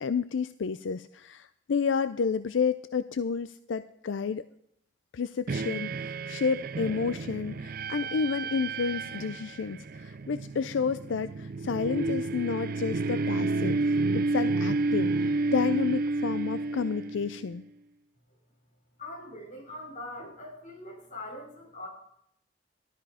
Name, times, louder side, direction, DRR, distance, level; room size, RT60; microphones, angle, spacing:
voice 1, 0.0-4.5 5.1-13.8 14.1-17.6, left 5 dB, 85° left, 13 dB, 0.4 m, -30 dB
sound 1, 5.5-17.5, right 3 dB, 50° right, 0.5 m, -30 dB
voice 2, 19.0-21.9, left 1 dB, 45° left, -3 dB, 4.9 m, -42 dB
12.5 x 12.5 x 4.9 m, 0.72 s
head